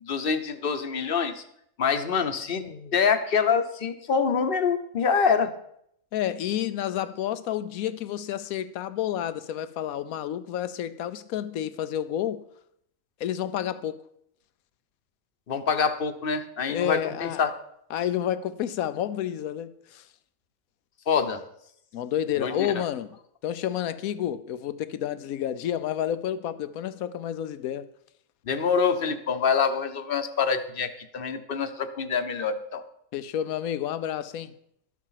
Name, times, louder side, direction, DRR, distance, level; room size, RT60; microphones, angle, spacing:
voice 1, 0.0-1.4 1.8-5.5 15.5-17.5 21.1-21.4 22.4-22.8 28.5-32.8, left 6 dB, 45° left, 1.0 m, -26 dB
voice 2, 6.1-12.4 13.2-14.0 16.7-17.4 17.9-20.1 21.9-23.2 23.4-27.9 33.1-34.5, left 10 dB, 90° left, 1.1 m, -30 dB
12.5 x 7.4 x 5.7 m
omnidirectional pair, 1.4 m